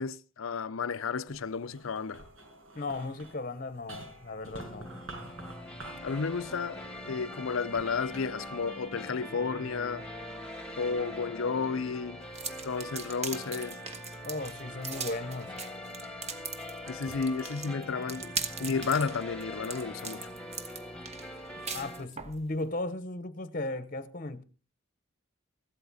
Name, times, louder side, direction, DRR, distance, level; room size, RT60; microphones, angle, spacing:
voice 1, 0.0-2.2 6.0-10.1 10.8-12.2 12.6-13.8 16.9-20.3, left 5 dB, 75° left, 0.6 m, -32 dB
sound 1, 1.2-9.7 10.3-11.0, right 2 dB, 70° right, 5.7 m, -49 dB
voice 2, 2.7-4.9 14.2-15.5 21.7-24.4, left 2 dB, 40° left, 0.9 m, -36 dB
sound 2, 4.6-22.0, left 1 dB, 5° left, 1.6 m, -43 dB
sound 3, 12.3-22.4, right 5 dB, 35° right, 1.3 m, -39 dB
15.5 x 13.0 x 4.1 m
head